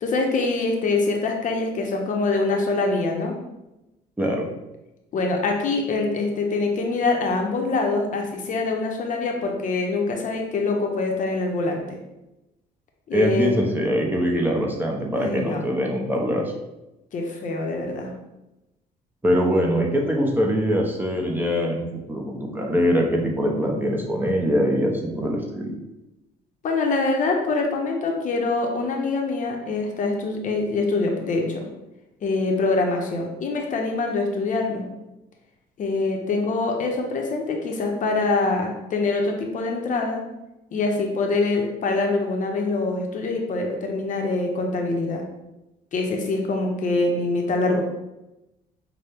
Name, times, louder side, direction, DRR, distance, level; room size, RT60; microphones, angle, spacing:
voice 1, 0.0-3.4 5.1-12.0 13.1-13.6 15.2-15.7 17.1-18.1 26.6-31.6 32.2-34.9 35.8-40.2 40.7-45.2 45.9-47.8, left 3 dB, 50° left, 2 dB, 0.7 m, -24 dB
voice 2, 4.2-4.5 13.1-16.5 19.2-25.7, equal, 10° right, -1 dB, 0.7 m, -23 dB
5.6 x 2.2 x 3.4 m, 0.95 s
cardioid pair, 110°, 17 cm